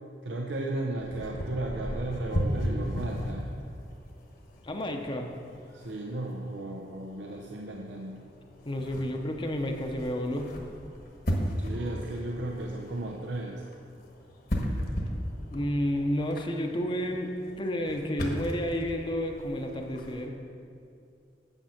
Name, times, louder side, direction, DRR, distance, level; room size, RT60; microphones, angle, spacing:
voice 1, 0.2-3.5 5.7-8.2 11.6-13.6, right 2 dB, 85° right, 1 dB, 0.7 m, -34 dB
sound 1, 1.0-20.3, equal, 55° left, 1.4 m, -37 dB
voice 2, 4.6-5.3 8.6-10.5 15.5-20.3, equal, 30° left, 3 dB, 0.7 m, -31 dB
9.0 x 7.2 x 5.8 m, 2.5 s
head